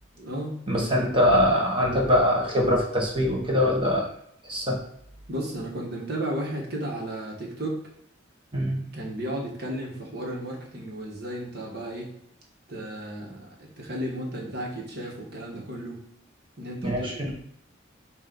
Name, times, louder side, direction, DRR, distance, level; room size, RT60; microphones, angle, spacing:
voice 1, 0.2-1.1 5.3-7.8 8.9-12.1 12.7-16.0 16.6-17.3, right 1 dB, 50° right, -2 dB, 1.6 m, -34 dB
voice 2, 0.7-4.0 4.5-4.8 8.5-8.8 16.8-17.1, left 1 dB, 25° right, -2 dB, 1.4 m, -22 dB
6.5 x 2.8 x 5.3 m, 0.72 s
head